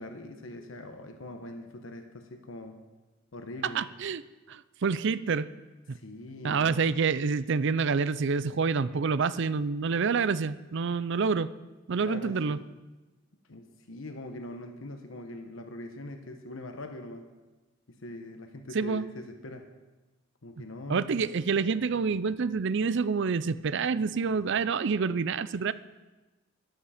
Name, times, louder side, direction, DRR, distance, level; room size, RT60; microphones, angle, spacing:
voice 1, 0.0-2.8 3.3-3.8 5.9-6.8 12.0-12.6 13.5-17.2 17.9-19.7 20.4-21.3, left 1 dB, 75° left, 5 dB, 1.1 m, -42 dB
voice 2, 3.7-4.2 4.5-5.5 5.9-6.0 6.4-11.5 11.9-12.6 18.7-19.1 20.9-25.7, right 5 dB, 65° right, 16 dB, 0.5 m, -27 dB
13.0 x 11.0 x 5.0 m, 1.1 s
head